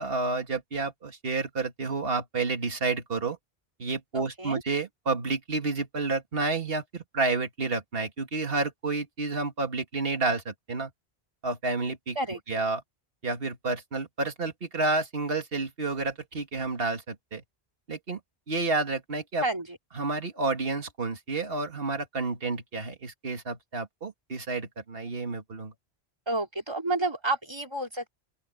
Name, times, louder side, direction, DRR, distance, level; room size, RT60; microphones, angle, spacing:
voice 1, 0.0-3.4 3.8-10.9 11.4-12.2 12.5-12.8 13.2-17.4 17.9-18.2 18.5-19.4 20.0-25.7, right 3 dB, 60° right, 2.3 m, -30 dB
voice 2, 4.1-4.6 12.1-12.4 19.4-19.8 26.3-28.1, right 2 dB, 25° right, 3.0 m, -30 dB
open air
omnidirectional pair, 1.1 m